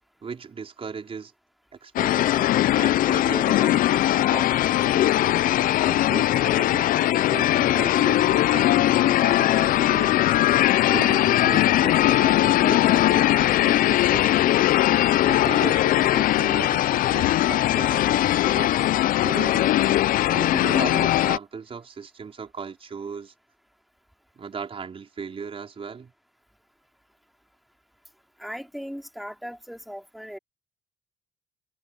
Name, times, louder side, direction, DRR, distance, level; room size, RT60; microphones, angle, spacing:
voice 1, 0.2-1.3 1.8-10.3 10.8-14.8 15.2-23.3 24.3-26.1, right 5 dB, 35° right, 4.7 m, -37 dB
sound 1, 2.0-21.4, left 14 dB, 55° left, 0.4 m, -20 dB
sound 2, 10.6-19.2, left 15 dB, 85° left, 2.9 m, -45 dB
voice 2, 28.4-30.4, equal, ahead, 2.9 m, -38 dB
cardioid pair, 110°, 17 cm